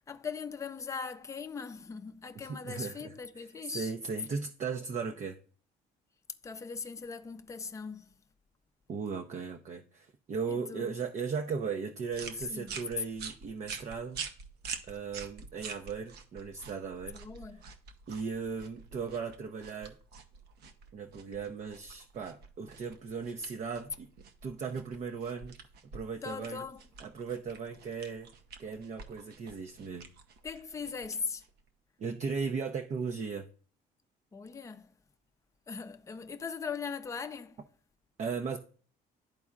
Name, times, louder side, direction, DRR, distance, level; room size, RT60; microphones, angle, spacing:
voice 1, 0.1-3.9 6.4-8.1 10.5-10.9 12.5-12.8 17.1-17.6 26.2-26.8 30.4-31.4 34.3-34.9 35.7-37.6, left 5 dB, 20° left, 0.6 m, -40 dB
voice 2, 2.3-5.4 8.9-14.2 14.8-17.2 18.1-19.9 20.9-24.1 24.4-25.6 25.9-26.6 27.0-28.3 28.6-30.1 32.0-33.5 38.2-38.6, right 5 dB, 45° right, 0.6 m, -37 dB
sound 1, 12.1-31.7, right 6 dB, 70° right, 0.9 m, -47 dB
12.0 x 4.2 x 2.4 m
cardioid pair, 110°, 17 cm